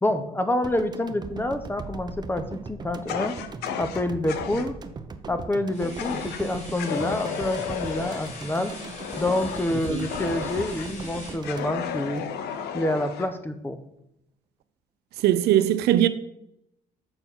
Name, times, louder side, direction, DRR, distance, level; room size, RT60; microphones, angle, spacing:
voice 1, 0.0-3.4 3.8-4.8 5.3-8.7 9.2-12.2 12.7-13.8, left 1 dB, 10° left, 0.8 m, -27 dB
sound 1, 0.6-12.8, right 4 dB, 25° right, 0.6 m, -39 dB
Fire, 3.1-4.7 6.0-6.4 6.8-10.9 11.4-13.3, left 8 dB, 75° left, 0.7 m, -33 dB
sound 2, 5.7-11.4, left 2 dB, 40° left, 2.5 m, -42 dB
voice 2, 15.2-16.1, right 12 dB, 75° right, 0.5 m, -20 dB
6.9 x 4.5 x 5.6 m
cardioid pair, 110°, 17 cm